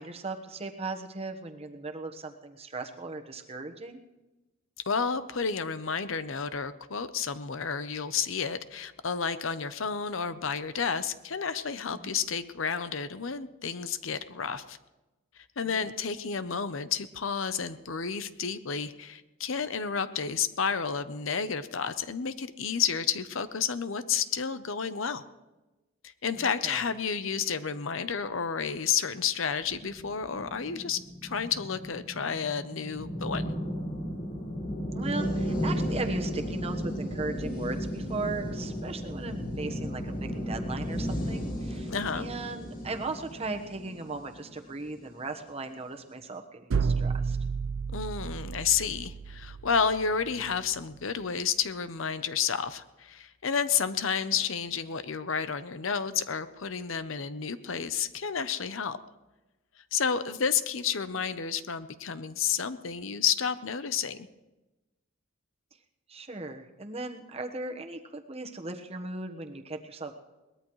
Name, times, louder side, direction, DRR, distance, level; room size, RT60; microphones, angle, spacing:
voice 1, 0.0-4.0 12.0-12.1 15.8-15.9 26.4-26.8 34.9-47.4 66.1-70.1, right 3 dB, 30° right, 5 dB, 1.2 m, -37 dB
voice 2, 4.9-14.8 15.6-25.2 26.0-33.6 41.9-42.3 47.9-59.0 59.9-64.2, left 6 dB, 70° left, 12 dB, 0.8 m, -31 dB
sound 1, 29.7-45.1, equal, 50° left, 6.2 m, -34 dB
sound 2, 46.7-50.6, right 5 dB, 70° right, 0.5 m, -32 dB
22.0 x 19.5 x 3.2 m, 1.1 s
head